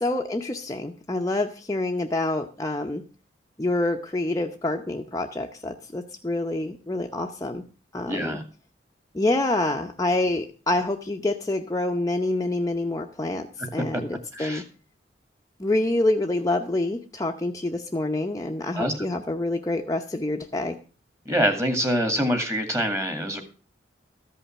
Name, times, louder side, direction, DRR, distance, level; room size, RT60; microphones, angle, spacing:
voice 1, 0.0-3.0 3.6-7.6 7.9-8.4 9.1-13.5 13.7-14.6 15.6-20.8, left 2 dB, 20° left, 3 dB, 0.8 m, -27 dB
voice 2, 8.1-8.4 13.9-14.0 14.3-14.6 18.8-19.1 21.3-23.4, equal, 15° right, 6 dB, 2.1 m, -25 dB
14.0 x 5.6 x 7.3 m, 0.37 s
head